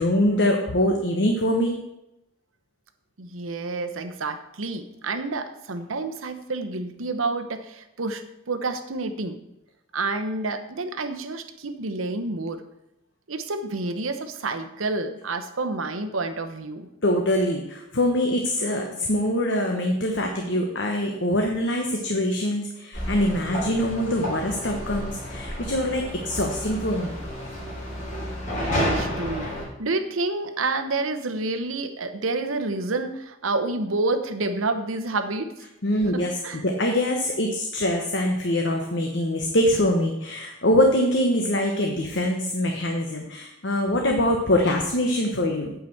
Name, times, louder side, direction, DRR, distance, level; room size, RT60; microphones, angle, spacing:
voice 1, 0.0-1.8 17.0-27.2 35.8-45.7, left 1 dB, 60° left, 2 dB, 1.1 m, -24 dB
voice 2, 3.2-9.4 9.9-12.6 13.3-16.9 28.8-29.5 29.8-35.5 36.1-36.6, right 3 dB, 85° right, 9 dB, 0.9 m, -29 dB
sound 1, 22.9-29.6, equal, 40° left, 3.5 m, -30 dB
9.0 x 5.0 x 7.8 m, 0.87 s
head